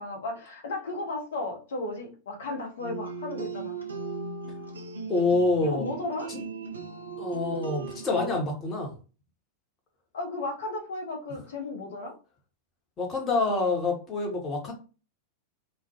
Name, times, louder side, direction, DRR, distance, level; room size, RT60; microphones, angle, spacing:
voice 1, 0.0-3.8 5.6-6.3 10.1-12.1, left 2 dB, 60° left, 1 dB, 0.7 m, -34 dB
sound 1, 2.8-8.4, right 5 dB, 75° right, 0.5 m, -37 dB
voice 2, 5.1-5.9 6.3-6.4 7.2-8.9 13.0-14.7, left 3 dB, 25° left, 0 dB, 0.9 m, -27 dB
2.1 x 2.1 x 2.8 m, 0.34 s
figure-of-eight pair, 90°, 0 cm